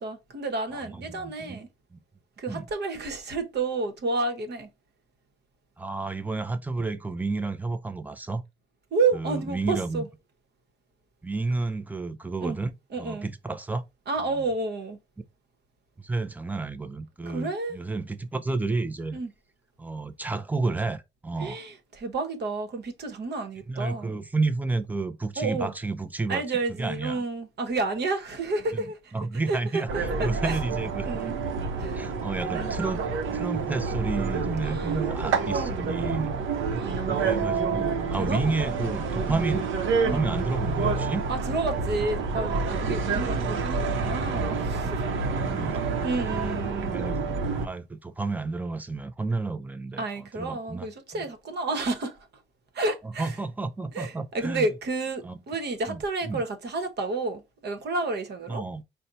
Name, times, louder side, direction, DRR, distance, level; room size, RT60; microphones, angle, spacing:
voice 1, 0.0-1.7 2.4-4.7 8.9-10.1 12.4-12.6 12.9-13.3 14.1-15.0 17.2-17.8 19.1-19.3 21.4-24.1 25.4-25.7 26.3-29.2 29.5-29.8 30.2-30.6 31.0-31.4 31.7-32.0 32.5-32.7 34.6-35.0 35.4-35.8 36.7-37.1 38.2-39.0 39.3-39.5 40.0-40.4 41.3-45.3 45.6-45.7 46.0-47.0 50.0-52.3 52.7-53.4 53.9-58.6, right 3 dB, 55° right, 1.1 m, -30 dB
voice 2, 0.7-1.6 1.9-2.0 2.5-2.7 5.8-8.4 9.1-10.0 11.2-12.7 13.0-13.8 16.0-19.2 19.8-21.6 23.7-26.4 26.8-27.2 28.7-28.8 29.1-31.1 31.9-33.0 33.3-36.4 37.0-39.6 40.0-41.2 45.0-45.9 46.9-50.9 51.1-51.2 53.2-54.7 55.2-55.4 55.9-56.4 58.5-58.8, right 3 dB, 10° right, 0.5 m, -31 dB
sound 1, 29.9-47.7, right 4 dB, 75° right, 0.8 m, -28 dB
4.2 x 2.2 x 3.9 m
cardioid pair, 90°, 20 cm